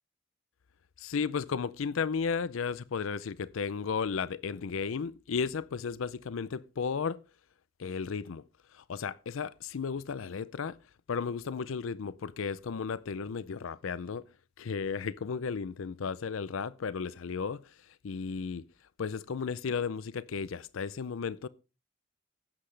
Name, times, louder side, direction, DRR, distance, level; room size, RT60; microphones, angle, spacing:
voice 1, 1.0-7.2 7.8-8.4 8.7-10.8 11.1-14.2 14.6-18.6 19.0-21.5, left 5 dB, 90° left, 0.5 m, -34 dB
13.5 x 10.0 x 3.3 m
head